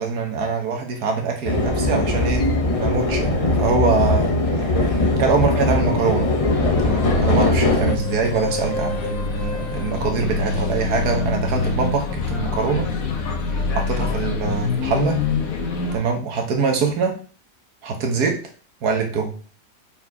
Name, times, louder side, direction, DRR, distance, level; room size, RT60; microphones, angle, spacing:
voice 1, 0.0-2.5 2.8-6.3 6.8-12.9 13.7-15.2 15.9-17.2 17.8-18.4 18.8-19.3, right 4 dB, 70° right, 3 dB, 1.8 m, -23 dB
sound 1, 1.5-8.0, left 2 dB, 30° left, 0.7 m, -20 dB
sound 2, 6.5-16.0, left 4 dB, 60° left, 1.4 m, -25 dB
5.6 x 4.5 x 4.8 m, 0.40 s
omnidirectional pair, 1.7 m